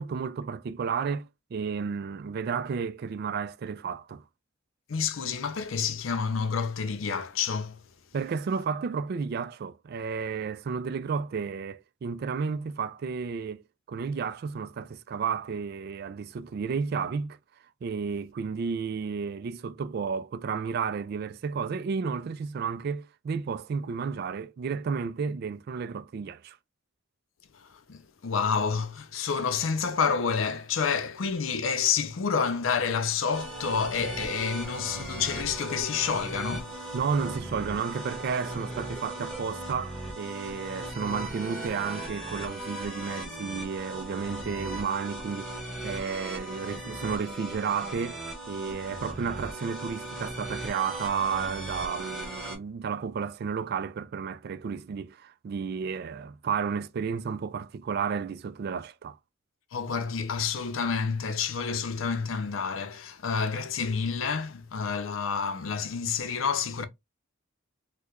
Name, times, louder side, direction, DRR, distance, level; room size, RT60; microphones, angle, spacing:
voice 1, 0.0-4.2 8.1-13.6 13.9-17.4 17.8-26.6 36.9-59.2, right 6 dB, 50° right, 0.3 m, -32 dB
voice 2, 4.9-7.8 27.5-36.8 59.7-66.9, left 6 dB, 85° left, 0.5 m, -29 dB
sound 1, 33.3-52.6, right 1 dB, 5° left, 1.4 m, -38 dB
4.5 x 2.2 x 2.4 m
head